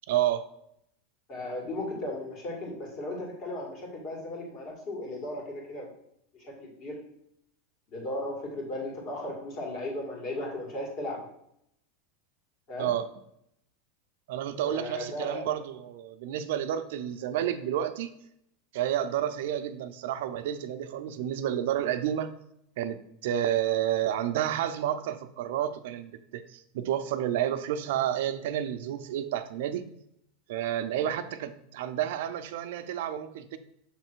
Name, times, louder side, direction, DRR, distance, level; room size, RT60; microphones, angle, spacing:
voice 1, 0.1-0.4 12.8-13.1 14.3-18.1 18.7-22.3 22.8-29.9 30.5-33.6, right 11 dB, 70° right, 10 dB, 0.5 m, -30 dB
voice 2, 1.3-5.9 6.3-7.0 7.9-11.3 12.7-12.9 14.6-15.4, left 1 dB, 40° left, 0 dB, 2.0 m, -36 dB
6.7 x 3.2 x 4.5 m, 0.74 s
supercardioid pair, 150°, 0 cm